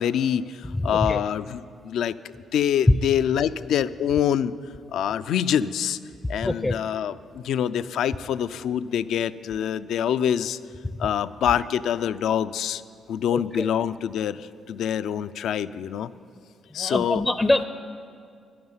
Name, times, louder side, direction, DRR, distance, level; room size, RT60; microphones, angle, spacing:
voice 1, 0.0-2.2 2.5-4.5 4.9-6.0 6.3-10.6 11.0-12.8 13.1-16.1 16.7-17.2, left 9 dB, 75° left, 14 dB, 0.4 m, -25 dB
voice 2, 0.9-1.2 6.4-6.7 13.3-13.7 16.8-17.6, left 2 dB, 15° left, 11 dB, 0.5 m, -24 dB
11.0 x 9.5 x 9.6 m, 2.3 s
cardioid pair, 90°, 0 cm